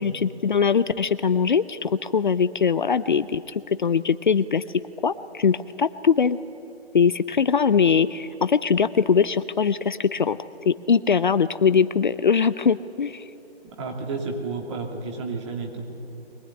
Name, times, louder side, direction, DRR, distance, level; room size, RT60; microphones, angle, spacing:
voice 1, 0.0-4.6 5.0-6.4 6.9-10.4 10.7-13.2, left 6 dB, 50° left, 14 dB, 0.6 m, -21 dB
voice 2, 13.7-15.8, right 3 dB, 30° right, 2 dB, 2.8 m, -31 dB
23.0 x 19.5 x 9.7 m, 2.7 s
figure-of-eight pair, 145°, 32 cm